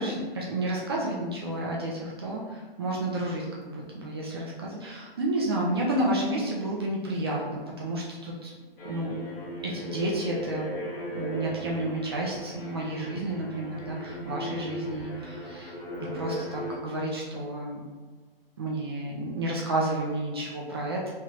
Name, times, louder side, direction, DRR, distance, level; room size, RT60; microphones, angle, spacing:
voice 1, 0.0-8.5 8.8-9.1 9.6-10.8 11.1-15.7 16.0-17.8 18.6-21.1, right 1 dB, 25° right, -3 dB, 0.4 m, -31 dB
sound 1, 8.8-16.8, equal, 75° left, 1.4 m, -37 dB
3.1 x 3.0 x 2.4 m, 1.4 s
hypercardioid pair, 145°, 29 cm